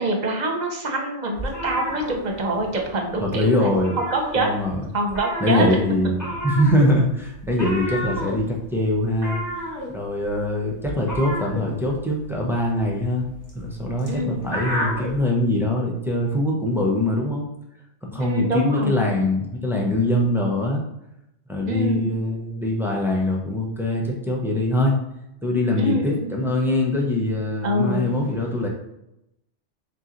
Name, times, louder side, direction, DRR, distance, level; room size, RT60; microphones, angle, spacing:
voice 1, 0.0-3.7 4.1-4.5 4.9-5.6 14.1-14.5 18.2-19.3 21.7-22.1 25.8-26.3 27.6-28.1, right 1 dB, 45° right, 1 dB, 0.7 m, -25 dB
sound 1, 1.4-2.9 3.1-3.4 3.7-4.8 5.1-15.2, equal, 15° left, 1.2 m, -31 dB
voice 2, 3.2-4.0 4.4-4.8 5.4-9.4 9.9-13.3 13.5-17.5 18.0-20.8 21.5-24.9 25.4-28.7, left 1 dB, 5° right, -2 dB, 0.4 m, -23 dB
3.7 x 2.9 x 3.8 m, 0.83 s
omnidirectional pair, 1.2 m